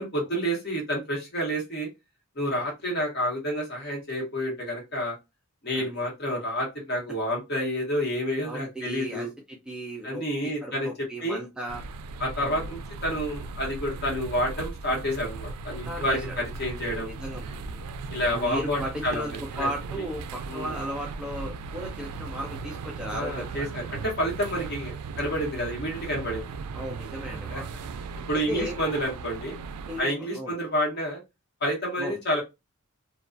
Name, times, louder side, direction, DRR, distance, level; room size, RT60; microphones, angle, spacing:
voice 1, 0.0-1.9 2.4-5.2 5.6-9.3 10.0-10.9 11.2-11.4 12.2-17.1 18.1-19.7 20.5-20.7 23.1-26.5 27.5-27.6 28.3-29.5 30.0-31.2 31.6-32.4, equal, 45° left, -2 dB, 1.0 m, -29 dB
voice 2, 5.7-6.0 8.4-11.8 12.4-12.8 15.9-16.4 16.8-17.8 18.3-23.8 26.7-27.7 28.3-28.8 29.9-30.6 32.0-32.2, equal, 5° right, -1 dB, 0.3 m, -36 dB
sound 1, 11.7-30.0, right 4 dB, 90° right, 0.3 m, -37 dB
2.3 x 2.2 x 2.5 m, 0.23 s
head